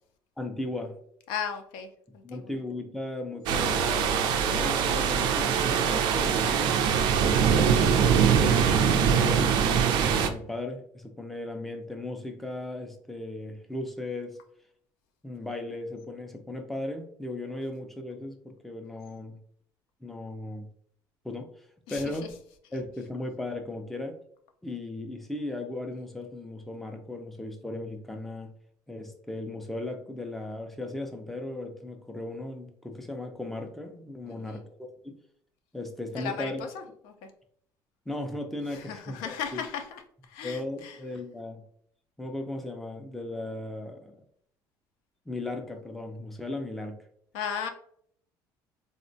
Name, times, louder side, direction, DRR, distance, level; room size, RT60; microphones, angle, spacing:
voice 1, 0.4-1.0 2.2-6.8 7.2-14.4 15.2-19.4 20.0-20.7 21.2-21.5 21.9-22.3 22.7-24.2 24.6-28.5 28.9-35.2 35.7-36.6 38.1-39.6 40.4-41.6 42.2-44.2 45.3-47.0, left 2 dB, ahead, 4 dB, 0.3 m, -36 dB
voice 2, 1.3-1.9 2.1-2.4 21.9-22.0 34.3-34.6 36.2-36.7 37.2-37.3 38.7-40.0 40.3-41.0 47.3-47.7, left 7 dB, 85° left, 6 dB, 0.4 m, -35 dB
sound 1, 3.5-10.3, right 7 dB, 70° right, 0.4 m, -23 dB
3.5 x 2.1 x 2.6 m, 0.64 s
cardioid pair, 140°, 8 cm